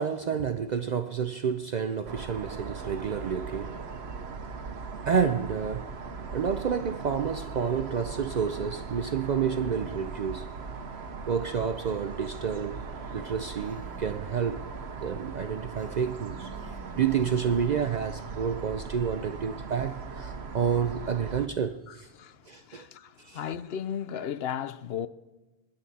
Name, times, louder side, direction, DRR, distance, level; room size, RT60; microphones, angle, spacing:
voice 1, 0.0-3.8 5.0-5.9 6.3-10.5 11.3-12.9 13.1-14.6 15.0-16.5 17.0-22.1 22.5-22.9 23.2-23.4, right 7 dB, 50° right, 0.6 m, -29 dB
sound 1, 2.0-21.5, right 4 dB, 85° right, 1.2 m, -39 dB
Female speech woman speaking, 13.6-14.2 15.7-18.0, equal, 5° left, 1.5 m, -51 dB
voice 2, 21.9-25.1, left 9 dB, 75° left, 0.9 m, -35 dB
26.5 x 10.5 x 4.2 m
omnidirectional pair, 1.1 m